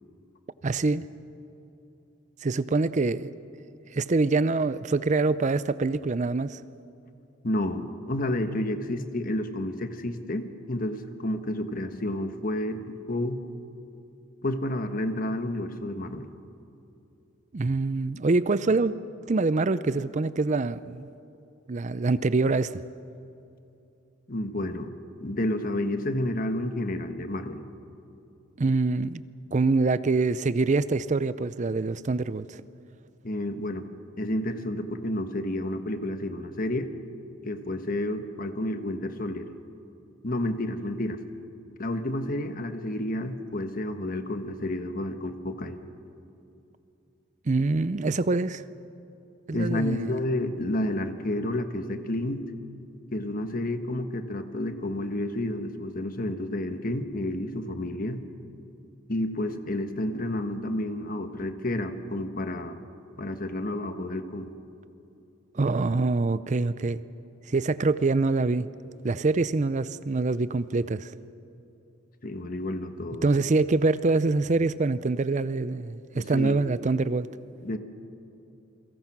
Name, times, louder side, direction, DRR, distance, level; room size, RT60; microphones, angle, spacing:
voice 1, 0.6-1.1 2.4-3.3 3.9-6.6 17.5-18.9 19.3-21.1 21.7-22.8 28.6-29.2 29.5-32.6 47.5-48.6 49.5-50.2 65.5-67.0 67.5-68.7 69.0-71.1 73.2-77.3, right 3 dB, 35° right, 0.5 m, -25 dB
voice 2, 7.4-13.4 14.4-16.3 24.3-27.6 33.2-33.9 34.2-36.9 37.4-39.5 40.2-41.2 41.8-45.8 49.5-52.4 53.1-58.2 59.1-62.8 63.2-64.5 72.2-73.3 76.1-76.6 77.6-77.8, left 1 dB, 45° left, 1.3 m, -30 dB
29.0 x 23.0 x 6.0 m
head